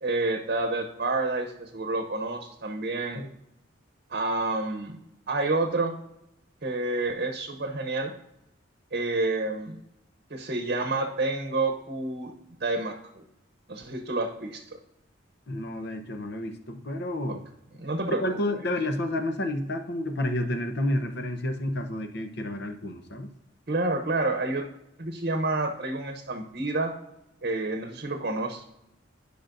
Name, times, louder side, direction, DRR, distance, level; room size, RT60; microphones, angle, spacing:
voice 1, 0.0-3.2 4.1-5.0 5.3-5.9 6.6-8.1 8.9-9.8 10.3-12.3 12.6-13.2 13.7-14.8 17.3-17.4 17.8-18.2 23.7-24.7 25.0-26.9 27.4-28.7, right 2 dB, 50° right, 5 dB, 0.8 m, -29 dB
voice 2, 15.5-17.4 18.2-23.3, left 1 dB, 60° left, 6 dB, 0.9 m, -30 dB
15.0 x 5.2 x 2.6 m, 0.86 s
head